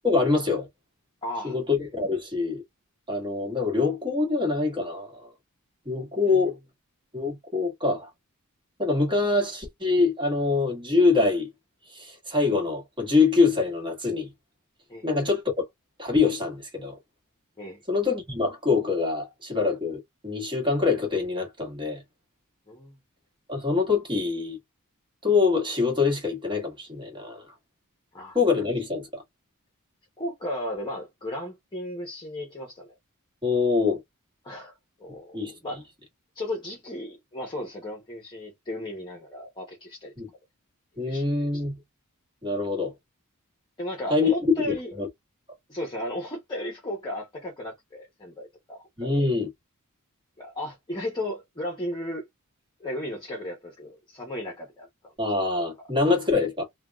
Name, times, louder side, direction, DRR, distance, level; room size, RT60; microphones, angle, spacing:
voice 1, 0.0-0.7 1.4-2.6 3.1-5.3 5.8-6.6 7.1-8.1 8.8-11.5 11.9-14.3 15.0-15.6 16.0-17.0 17.9-22.0 23.5-24.6 25.2-27.4 28.3-29.2 33.4-34.0 35.3-35.5 40.2-40.3 41.0-41.7 42.4-42.9 44.1-44.3 44.7-45.1 49.0-49.5 55.2-56.6, left 4 dB, 20° right, 1.4 m, -24 dB
voice 2, 1.2-1.6 6.2-6.5 14.9-15.1 17.6-17.8 22.7-23.0 28.1-28.4 30.2-32.9 34.4-34.7 35.0-35.8 36.3-40.1 41.1-41.6 43.8-44.9 45.7-49.3 50.4-52.3 52.8-55.1, left 1 dB, 20° left, 0.9 m, -35 dB
3.4 x 2.3 x 2.3 m
head